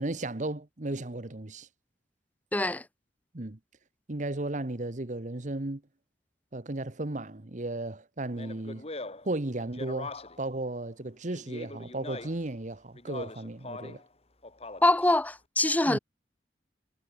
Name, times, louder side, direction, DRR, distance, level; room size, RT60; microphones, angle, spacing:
voice 1, 0.0-1.7 3.3-3.6 4.1-5.8 6.5-8.9 9.2-14.0 15.9-16.0, right 2 dB, 45° right, 1.2 m, -35 dB
voice 2, 2.5-2.8 14.8-16.0, left 2 dB, 10° left, 0.5 m, -24 dB
Speech, 8.3-10.5 11.3-12.5 12.9-14.1 14.4-15.1, left 2 dB, 35° left, 3.7 m, -42 dB
head